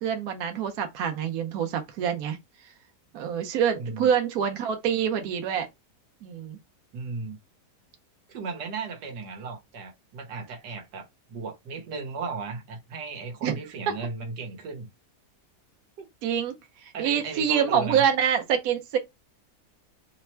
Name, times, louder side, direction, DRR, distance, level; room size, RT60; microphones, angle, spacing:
voice 1, 0.0-2.4 3.1-5.7 6.2-6.6 13.4-13.6 16.2-16.5 16.8-19.0, right 8 dB, 65° right, 1.1 m, -26 dB
voice 2, 3.8-4.1 6.9-7.4 8.3-14.9 16.0-16.1 16.9-18.0, right 4 dB, 80° right, 1.5 m, -36 dB
3.3 x 2.1 x 4.3 m
omnidirectional pair, 1.8 m